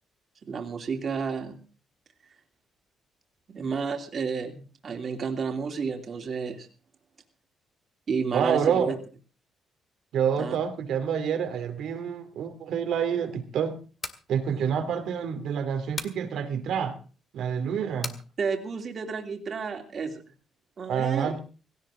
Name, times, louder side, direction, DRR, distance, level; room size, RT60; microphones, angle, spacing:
voice 1, 0.5-1.6 3.5-6.7 8.1-9.0 10.4-10.6 14.5-14.7 18.4-20.2 20.8-21.3, right 5 dB, 50° right, 4 dB, 3.0 m, -31 dB
voice 2, 8.3-8.9 10.1-13.8 14.3-17.0 17.3-18.1 20.9-21.4, right 7 dB, 75° right, 8 dB, 2.6 m, -28 dB
sound 1, 14.0-14.3 16.0-16.2 18.0-18.2, left 3 dB, 30° left, 1.9 m, -36 dB
17.5 x 17.0 x 3.8 m, 0.36 s
cardioid pair, 90°, 0 cm